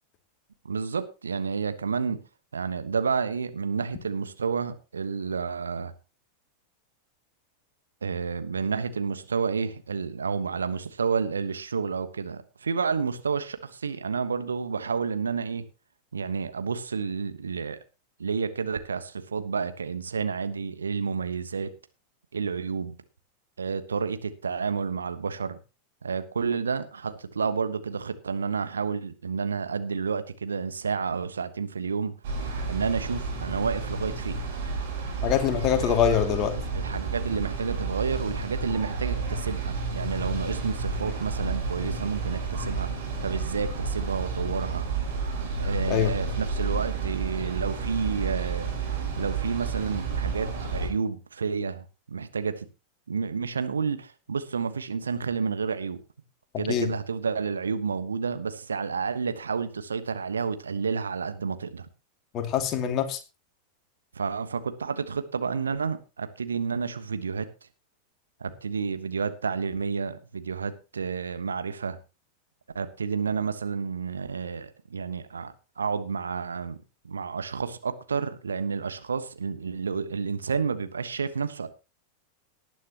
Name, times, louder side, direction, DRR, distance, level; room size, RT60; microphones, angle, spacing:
voice 1, 0.6-2.2 2.5-5.9 8.0-15.6 16.1-17.8 18.2-21.7 22.3-22.9 23.6-25.6 26.0-32.1 32.7-34.4 35.8-36.0 36.7-42.9 43.2-44.9 45.6-48.7 49.2-52.7 53.1-56.0 56.6-61.9 64.1-67.5 68.4-72.0 72.7-76.8 77.0-81.7, right 5 dB, 70° right, 1.3 m, -30 dB
sound 1, 32.2-50.9, right 4 dB, 55° right, 7.3 m, -31 dB
voice 2, 35.2-36.5 45.9-46.1 56.7-56.9 62.3-63.2, left 9 dB, 35° left, 2.5 m, -24 dB
18.5 x 10.0 x 3.0 m
figure-of-eight pair, 90°, 0 cm